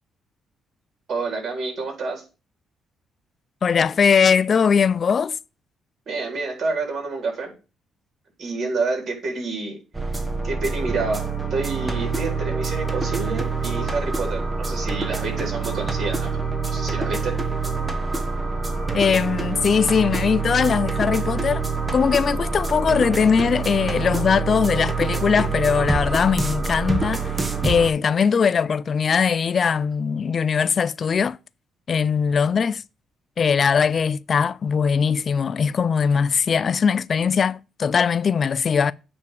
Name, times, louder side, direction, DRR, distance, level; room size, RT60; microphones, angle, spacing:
voice 1, 1.1-2.2 6.1-7.5 8.4-9.8 10.4-16.3 16.7-17.3, right 3 dB, 55° right, 4.0 m, -28 dB
voice 2, 3.6-5.4 18.9-21.7 21.9-27.3 27.6-31.4 31.9-32.8 33.4-38.9, left 6 dB, 45° left, 0.3 m, -20 dB
sound 1, 9.9-27.9, right 4 dB, 20° right, 1.2 m, -26 dB
8.8 x 3.4 x 6.7 m
cardioid pair, 90°, 0 cm